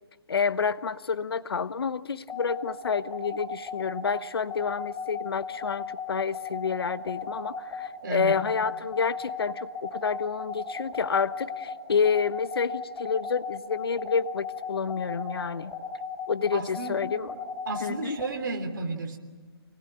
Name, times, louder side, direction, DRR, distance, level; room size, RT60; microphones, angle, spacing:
voice 1, 0.3-15.7 16.3-17.3 17.8-18.2, left 5 dB, 65° left, 14 dB, 1.1 m, -29 dB
sound 1, 2.3-18.3, left 5 dB, 5° left, 4.4 m, -36 dB
voice 2, 8.0-8.4 16.5-17.0 17.7-19.2, right 3 dB, 50° right, 5 dB, 3.2 m, -32 dB
25.5 x 20.0 x 8.0 m, 1.4 s
hypercardioid pair, 170°, 14 cm